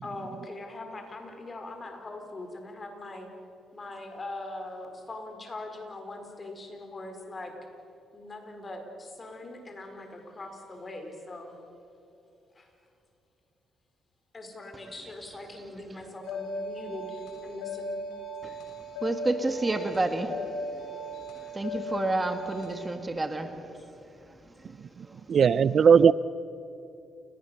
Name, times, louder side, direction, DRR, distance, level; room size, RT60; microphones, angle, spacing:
voice 1, 0.0-3.3 3.7-7.5 8.1-11.5 12.5-12.7 14.3-18.0 23.7-23.8, left 2 dB, 30° left, 4 dB, 4.6 m, -41 dB
sound 1, 16.2-22.9, equal, 90° left, 7.7 m, -37 dB
voice 2, 19.0-20.4 21.5-23.5 25.0-25.1, right 2 dB, 20° right, 7 dB, 1.7 m, -29 dB
voice 3, 25.3-26.1, right 7 dB, 55° right, 18 dB, 0.4 m, -18 dB
29.5 x 19.0 x 7.0 m, 2.8 s
cardioid pair, 90°, 0 cm